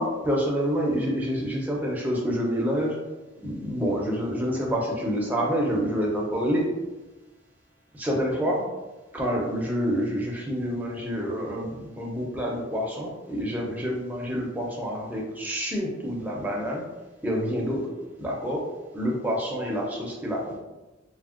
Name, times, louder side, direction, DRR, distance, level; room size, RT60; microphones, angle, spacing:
voice 1, 0.0-2.9 3.4-6.7 7.9-8.6 9.1-16.8 17.2-17.9 18.2-18.6 18.9-20.6, equal, 10° right, -2 dB, 0.4 m, -27 dB
3.3 x 2.1 x 2.4 m, 1.1 s
head